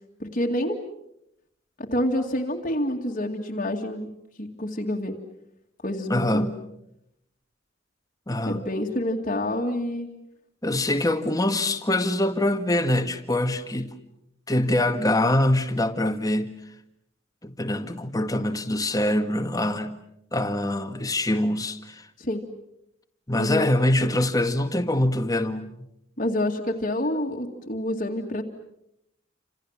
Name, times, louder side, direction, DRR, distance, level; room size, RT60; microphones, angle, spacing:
voice 1, 0.2-0.8 1.8-5.2 5.8-6.5 8.5-10.1 22.2-22.5 23.3-23.7 26.2-28.4, left 1 dB, 40° left, 2.2 m, -28 dB
voice 2, 6.1-6.6 8.3-8.6 10.6-13.9 14.5-16.5 17.4-20.0 20.3-22.1 23.3-25.9, left 1 dB, 20° left, 1.8 m, -24 dB
29.5 x 27.0 x 7.3 m
head